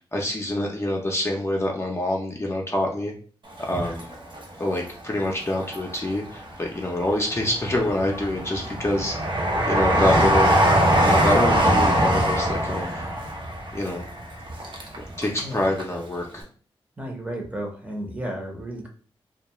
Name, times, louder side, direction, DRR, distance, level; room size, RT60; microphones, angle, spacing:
voice 1, 0.1-3.1 3.6-4.1 4.6-9.1 9.7-10.6 11.0-12.9 13.7-14.1 14.9-16.4, left 1 dB, 25° left, 0 dB, 0.6 m, -26 dB
Train, 3.6-4.8 5.3-6.2 6.8-15.5 15.8-15.9, right 1 dB, 55° right, 0.7 m, -22 dB
voice 2, 17.0-18.9, right 1 dB, 15° right, 0 dB, 0.8 m, -33 dB
2.3 x 2.2 x 2.9 m, 0.42 s
cardioid pair, 55°, 10 cm